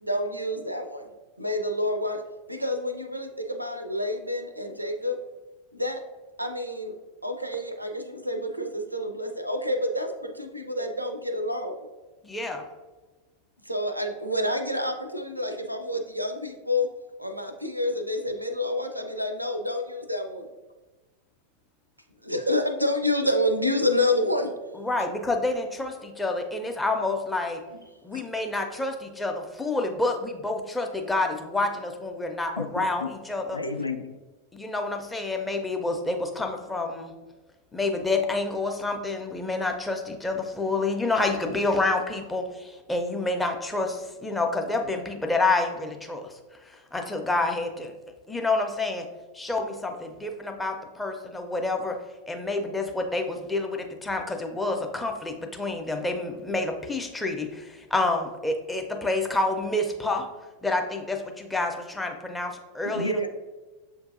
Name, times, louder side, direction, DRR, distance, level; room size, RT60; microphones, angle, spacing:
voice 1, 0.0-1.1 1.4-2.2 2.5-5.2 5.7-6.0 6.4-6.9 7.2-11.8 13.6-16.9 17.2-20.5 22.2-24.5, left 1 dB, 85° right, 6 dB, 0.4 m, -28 dB
voice 2, 12.2-12.7 24.7-27.6 28.0-33.6 34.5-37.1 37.7-47.9 48.3-49.1 49.3-52.0 52.3-60.3 60.6-63.1, left 2 dB, 10° left, 3 dB, 0.5 m, -28 dB
voice 3, 32.6-33.1 33.5-34.1 62.8-63.3, left 2 dB, 80° left, 6 dB, 0.3 m, -31 dB
6.9 x 2.6 x 2.5 m, 1.2 s
figure-of-eight pair, 90°, 0 cm